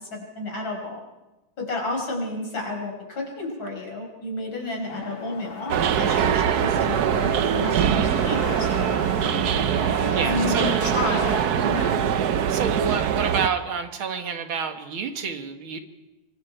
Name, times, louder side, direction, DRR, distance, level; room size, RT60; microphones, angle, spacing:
voice 1, 0.1-1.0 1.6-8.7 10.2-12.0, left 2 dB, 70° left, 1 dB, 5.8 m, -31 dB
sound 1, 4.9-11.5, left 5 dB, 40° left, 0.8 m, -36 dB
sound 2, 5.7-13.5, right 9 dB, 60° right, 1.2 m, -23 dB
voice 2, 10.1-10.8 12.5-15.8, right 6 dB, 85° right, 6 dB, 2.5 m, -29 dB
25.5 x 24.0 x 4.6 m, 1.0 s
omnidirectional pair, 2.2 m